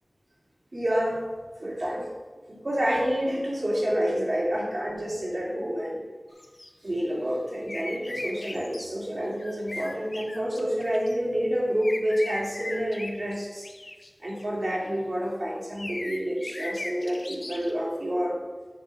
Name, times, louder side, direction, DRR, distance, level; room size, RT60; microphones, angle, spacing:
voice 1, 0.7-1.3 1.6-2.1 2.5-6.0 6.8-13.7 14.2-18.4, equal, 60° right, -5 dB, 2.8 m, -28 dB
sound 1, 6.4-6.7 7.7-8.9 9.4-11.2 11.8-14.4 15.8-17.7, left 2 dB, 50° left, 0.8 m, -38 dB
6.8 x 6.0 x 5.1 m, 1.3 s
wide cardioid pair, 60°, 0 cm